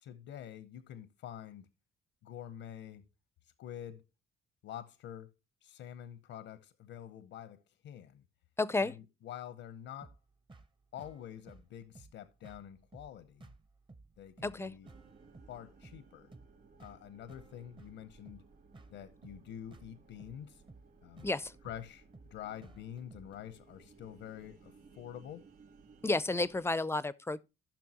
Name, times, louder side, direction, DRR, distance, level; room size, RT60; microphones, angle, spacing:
voice 1, 0.0-1.7 2.2-3.0 3.6-4.0 4.6-5.3 5.6-8.2 8.8-10.2 10.9-13.5 14.2-14.9 15.5-16.3 16.8-18.4 18.9-20.6 21.0-21.3 21.6-22.0 22.3-25.5, left 10 dB, 85° left, 0.8 m, -47 dB
voice 2, 8.6-9.0 14.4-14.7 21.2-21.5 26.0-27.4, left 2 dB, 10° left, 0.5 m, -31 dB
sound 1, 10.0-23.4, right 3 dB, 25° right, 0.8 m, -57 dB
sound 2, 14.8-26.7, right 4 dB, 50° right, 3.0 m, -60 dB
15.0 x 5.8 x 2.9 m
cardioid pair, 90°, 20 cm